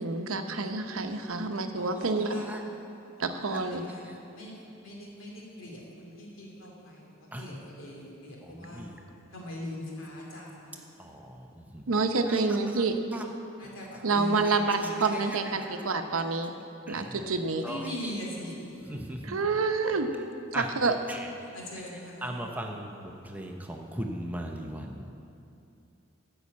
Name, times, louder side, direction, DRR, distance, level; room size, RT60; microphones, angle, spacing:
voice 1, 0.0-2.4 3.2-3.8 11.9-13.0 14.0-16.5 16.9-17.7 18.1-18.2 19.2-20.1 20.5-21.0, right 3 dB, 85° right, 0.8 m, -28 dB
voice 2, 4.8-5.8 6.2-6.7 7.4-8.8 9.3-10.7 13.6-14.4 14.8-15.1 17.6-18.8 21.5-22.4, left 1 dB, 75° left, 2.7 m, -40 dB
voice 3, 8.4-8.9 11.0-11.9 12.3-12.4 13.1-13.2 13.8-13.9 14.4-14.6 15.1-15.7 16.9-17.2 17.6-18.2 18.9-19.4 20.5-20.7 21.1-21.3 21.9-25.1, right 1 dB, 10° right, 0.7 m, -39 dB
13.0 x 5.6 x 8.3 m
head